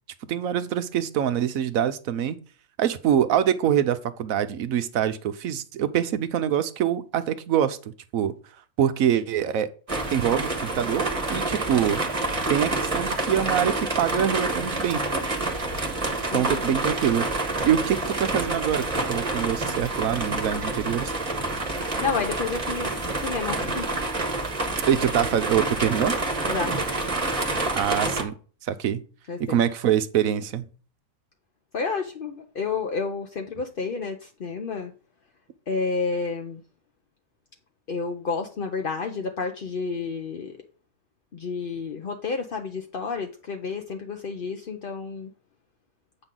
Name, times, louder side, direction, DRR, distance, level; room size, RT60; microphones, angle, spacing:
voice 1, 0.3-2.4 2.8-7.8 8.1-8.3 8.8-9.7 10.1-12.0 12.5-15.0 16.3-17.3 17.6-21.1 24.9-26.2 27.7-28.3 28.6-29.0 29.4-30.6, right 9 dB, 65° right, 1.0 m, -24 dB
sound 1, 9.9-28.2, right 2 dB, 20° right, 1.3 m, -28 dB
voice 2, 16.3-16.8 22.0-23.9 26.5-26.7 29.3-29.6 31.7-34.9 35.7-36.6 37.9-40.6 41.3-45.3, left 4 dB, 50° left, 0.6 m, -30 dB
8.8 x 6.1 x 3.8 m
omnidirectional pair, 1.8 m